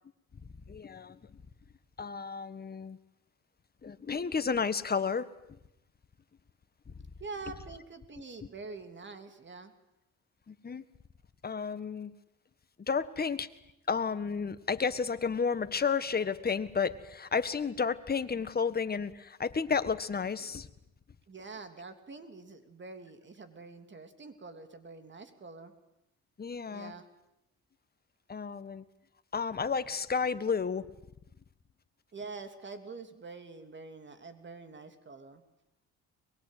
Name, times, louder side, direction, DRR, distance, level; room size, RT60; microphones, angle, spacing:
voice 1, 0.7-1.2 2.0-3.0 3.8-5.3 10.5-10.8 11.4-12.1 12.8-13.5 13.9-20.7 26.4-26.9 28.3-28.8 29.3-30.9, left 5 dB, 30° left, 12 dB, 1.6 m, -32 dB
voice 2, 7.2-9.7 21.3-25.7 26.7-27.1 32.1-35.4, right 4 dB, 40° right, 8 dB, 3.2 m, -45 dB
23.0 x 22.0 x 9.3 m, 0.87 s
cardioid pair, 90°, 30 cm